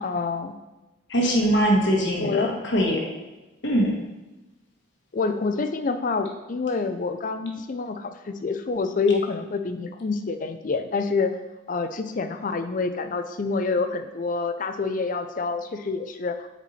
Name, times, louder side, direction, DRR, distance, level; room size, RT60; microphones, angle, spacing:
voice 1, 0.0-0.5 2.2-2.5 5.1-11.3 11.7-16.5, left 4 dB, 40° left, 9 dB, 0.4 m, -27 dB
voice 2, 1.1-3.1 3.6-3.9, equal, 60° left, 0 dB, 1.3 m, -22 dB
6.9 x 4.6 x 4.1 m, 1.1 s
head